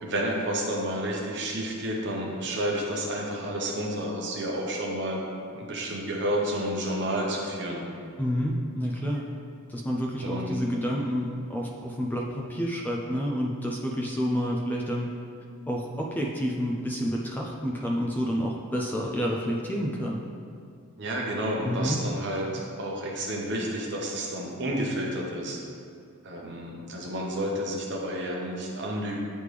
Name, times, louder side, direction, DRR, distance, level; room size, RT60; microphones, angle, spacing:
voice 1, 0.0-5.2 5.5-7.8 10.2-10.5 21.0-25.6 26.2-29.1, right 1 dB, 50° right, -2 dB, 0.9 m, -30 dB
voice 2, 8.2-9.3 9.7-15.1 15.7-20.2 21.6-22.0, equal, 10° left, -2 dB, 0.3 m, -29 dB
9.1 x 3.3 x 3.3 m, 2.3 s
head